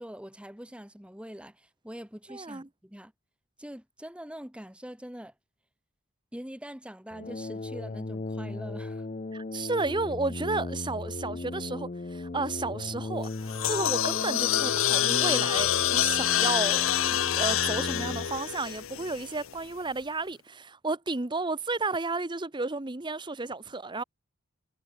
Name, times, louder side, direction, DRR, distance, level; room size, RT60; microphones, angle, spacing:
voice 1, 0.0-3.1 3.6-5.3 6.3-9.1, equal, 5° right, 1.7 m, -43 dB
voice 2, 2.3-2.7 9.3-13.3 13.6-24.0, right 3 dB, 20° right, 0.8 m, -32 dB
sound 1, 7.1-18.4, left 2 dB, 35° left, 0.6 m, -37 dB
sound 2, 13.2-19.5, left 11 dB, 70° left, 0.7 m, -27 dB
head